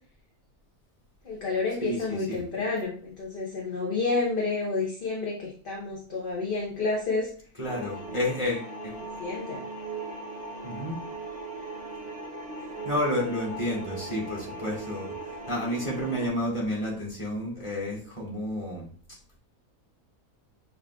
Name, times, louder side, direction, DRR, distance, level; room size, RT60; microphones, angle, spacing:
voice 1, 1.2-7.3 9.2-9.6, left 3 dB, 45° left, -2 dB, 0.8 m, -30 dB
voice 2, 1.8-2.4 7.6-8.9 10.6-10.9 12.8-18.9, left 1 dB, 20° left, -5 dB, 1.6 m, -31 dB
sound 1, 7.6-16.3, right 2 dB, 35° right, 0.9 m, -39 dB
6.6 x 2.8 x 2.3 m, 0.43 s
omnidirectional pair, 1.6 m